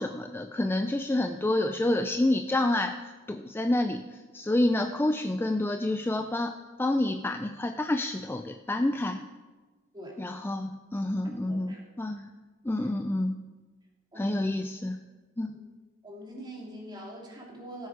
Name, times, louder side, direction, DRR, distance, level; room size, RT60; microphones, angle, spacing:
voice 1, 0.0-6.5 6.8-9.2 10.2-12.3 12.6-13.4 14.2-15.0 15.4-15.6, left 1 dB, 10° left, 6 dB, 0.4 m, -28 dB
voice 2, 11.4-11.8 12.8-12.9 14.1-14.4 15.5-15.6 16.0-17.9, equal, 20° right, -3 dB, 2.8 m, -43 dB
17.5 x 8.0 x 4.7 m, 1.3 s
head